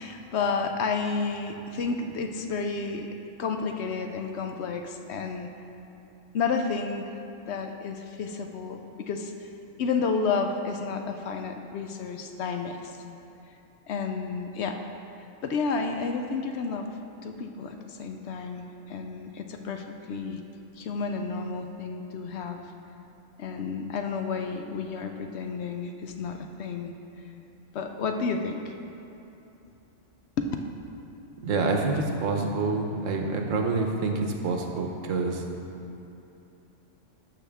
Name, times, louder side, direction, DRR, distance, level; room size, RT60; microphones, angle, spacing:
voice 1, 0.0-3.1 3.4-5.5 6.3-7.1 7.5-9.5 9.8-12.9 13.9-14.8 15.4-16.9 17.2-20.4 20.8-22.6 23.4-26.9 27.7-28.7 30.4-30.5, left 5 dB, 65° left, 5 dB, 0.8 m, -31 dB
voice 2, 31.4-35.4, right 3 dB, 80° right, 2 dB, 1.2 m, -27 dB
12.0 x 5.8 x 3.4 m, 2.9 s
omnidirectional pair, 1.3 m